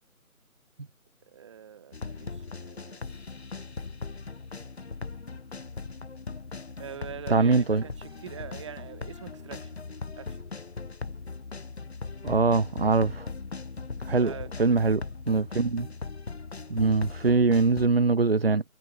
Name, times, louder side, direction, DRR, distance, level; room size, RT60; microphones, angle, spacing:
voice 1, 1.3-3.0 6.8-9.8 10.1-10.4 14.1-15.4, right 8 dB, 20° right, 7.7 m, -44 dB
sound 1, 1.9-17.9, left 4 dB, 45° left, 1.0 m, -39 dB
voice 2, 7.3-7.8 12.2-13.3 14.1-14.3 14.6-15.0 15.3-15.9 16.7-18.6, right 4 dB, 40° right, 1.1 m, -22 dB
figure-of-eight pair, 170°, 43 cm